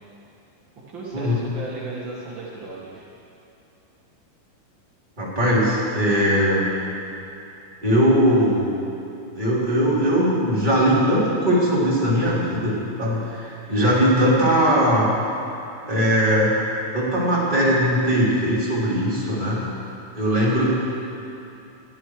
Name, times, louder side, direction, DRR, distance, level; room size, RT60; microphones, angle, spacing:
voice 1, 0.9-3.1, right 2 dB, 80° right, -6 dB, 1.0 m, -35 dB
voice 2, 5.2-6.6 7.8-8.7 9.3-15.1 15.9-16.5 16.9-19.6 20.1-20.7, equal, 10° right, -8 dB, 3.1 m, -20 dB
22.0 x 13.0 x 4.9 m, 2.8 s
omnidirectional pair, 5.8 m